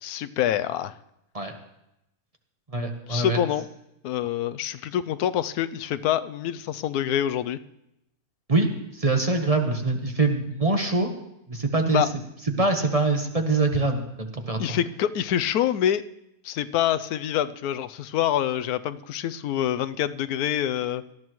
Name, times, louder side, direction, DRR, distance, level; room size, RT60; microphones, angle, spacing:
voice 1, 0.0-0.9 3.1-3.7 4.0-7.6 11.9-12.1 14.6-16.0 16.4-21.0, left 10 dB, 90° left, 12 dB, 1.1 m, -26 dB
voice 2, 2.7-3.4 8.5-11.1 11.5-12.0 12.6-14.8, right 3 dB, 25° right, 4 dB, 1.1 m, -24 dB
18.0 x 13.0 x 3.1 m, 0.84 s
omnidirectional pair, 1.6 m